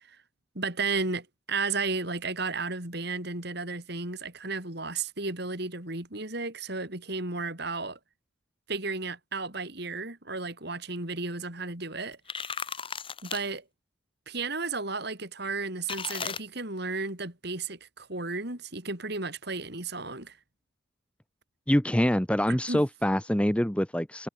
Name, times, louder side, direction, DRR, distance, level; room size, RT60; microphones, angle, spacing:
voice 1, 0.5-8.0 8.7-12.2 13.2-13.6 14.3-20.4 22.5-22.8, right 3 dB, 50° right, 4.1 m, -33 dB
sound 1, 12.1-13.4 15.9-16.4, left 6 dB, 25° left, 6.1 m, -35 dB
voice 2, 21.7-24.3, equal, 5° left, 0.9 m, -25 dB
head